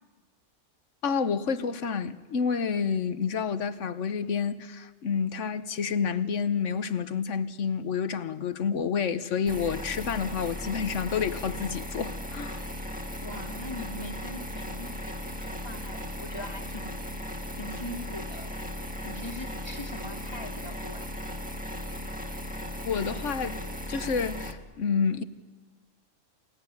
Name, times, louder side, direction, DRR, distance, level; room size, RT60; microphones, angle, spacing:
voice 1, 1.0-12.6 22.8-23.6 23.9-25.2, left 6 dB, 70° left, 1.4 m, -29 dB
sound 1, 9.5-24.5, left 1 dB, 5° right, 1.6 m, -37 dB
voice 2, 13.2-17.0 17.6-18.5 19.0-21.1, left 1 dB, 20° left, 2.1 m, -41 dB
28.5 x 17.5 x 9.5 m
omnidirectional pair, 1.3 m